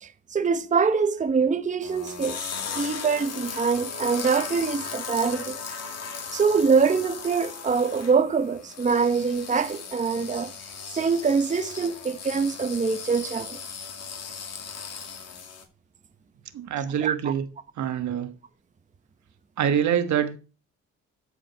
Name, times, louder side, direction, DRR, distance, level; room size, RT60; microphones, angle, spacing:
voice 1, 0.0-2.5 2.7-5.6 6.3-10.5 10.9-13.6 17.0-17.3, right 5 dB, 25° right, 0.8 m, -24 dB
sound 1, 1.8-15.6, left 6 dB, 55° left, 2.3 m, -37 dB
voice 2, 16.5-17.5 17.8-18.3 19.6-20.4, right 9 dB, 70° right, 1.3 m, -25 dB
13.5 x 5.0 x 4.6 m
cardioid pair, 90°, 30 cm